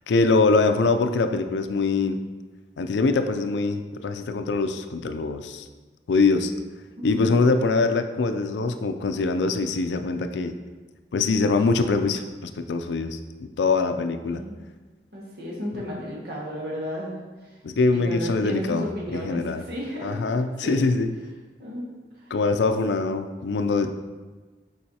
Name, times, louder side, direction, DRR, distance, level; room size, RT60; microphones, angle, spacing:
voice 1, 0.1-2.2 2.8-5.7 6.1-6.5 7.0-10.5 11.1-14.4 17.6-18.8 19.1-19.6 20.0-21.1 22.3-23.9, left 3 dB, 80° left, 8 dB, 0.4 m, -23 dB
voice 2, 7.0-7.5 14.2-14.6 15.1-17.1 17.9-20.8 21.6-21.9 22.2-22.3, equal, 65° right, -4 dB, 1.7 m, -33 dB
7.6 x 4.7 x 2.8 m, 1.3 s
head